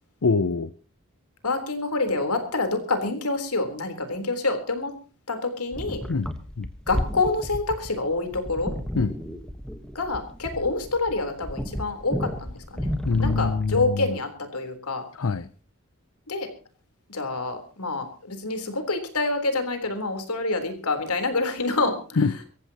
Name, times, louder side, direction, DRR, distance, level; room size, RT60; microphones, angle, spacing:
voice 1, 0.2-0.7 6.1-6.3 6.6-6.7 8.9-9.1 13.0-14.2 15.1-15.5 22.2-22.4, left 4 dB, 65° left, 14 dB, 0.6 m, -24 dB
voice 2, 1.4-4.9 5.3-6.0 6.9-8.7 9.9-12.9 13.2-15.0 16.3-16.5 17.1-22.2, left 3 dB, 85° left, 7 dB, 3.8 m, -27 dB
sound 1, 5.7-14.0, equal, 5° left, 1.3 m, -33 dB
24.0 x 15.0 x 2.9 m, 0.37 s
head